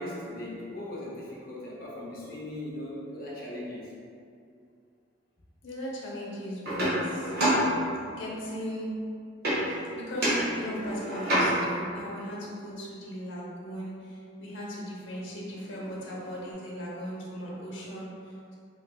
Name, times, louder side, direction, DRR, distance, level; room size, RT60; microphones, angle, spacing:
voice 1, 0.0-4.0, left 1 dB, 50° left, -6 dB, 0.6 m, -38 dB
voice 2, 5.6-7.3 7.9-8.9 9.4-18.6, equal, 80° left, -4 dB, 0.8 m, -38 dB
sound 1, 6.6-8.3 9.4-9.9 10.2-11.9 15.1-15.2 15.5-16.5, equal, 55° right, 0.8 m, -28 dB
3.2 x 3.2 x 2.3 m, 2.4 s
head